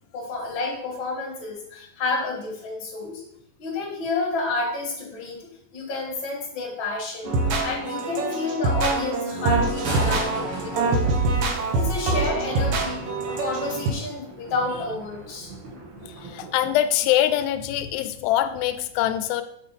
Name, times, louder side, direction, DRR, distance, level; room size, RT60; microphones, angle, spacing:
voice 1, 0.1-3.2 3.6-5.4 5.7-7.4 7.6-11.2 11.7-13.0 13.3-15.5, left 3 dB, 50° left, -2 dB, 1.6 m, -30 dB
sound 1, 7.2-13.9, right 3 dB, 75° right, 1.3 m, -25 dB
Thunder, 9.5-16.7, right 2 dB, 60° right, 2.8 m, -38 dB
voice 2, 16.0-19.4, left 12 dB, 85° left, 10 dB, 2.3 m, -24 dB
7.5 x 5.7 x 3.4 m, 0.72 s
omnidirectional pair, 4.1 m